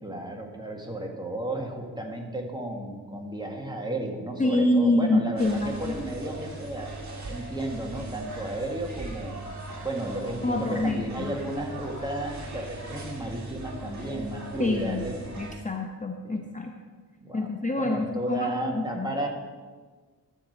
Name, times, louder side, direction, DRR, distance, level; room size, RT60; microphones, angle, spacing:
voice 1, 0.0-6.9 7.3-9.4 9.8-15.3 16.2-16.4 17.2-17.5 17.8-19.3, right 1 dB, 10° right, 0 dB, 1.9 m, -33 dB
voice 2, 4.4-6.0 10.4-11.3 14.6-15.1 15.4-16.7 17.3-19.1, left 2 dB, 20° left, 2 dB, 0.8 m, -26 dB
sound 1, 5.4-15.6, right 2 dB, 45° right, 2.0 m, -39 dB
12.5 x 4.8 x 8.0 m, 1.4 s
wide cardioid pair, 90°, 37 cm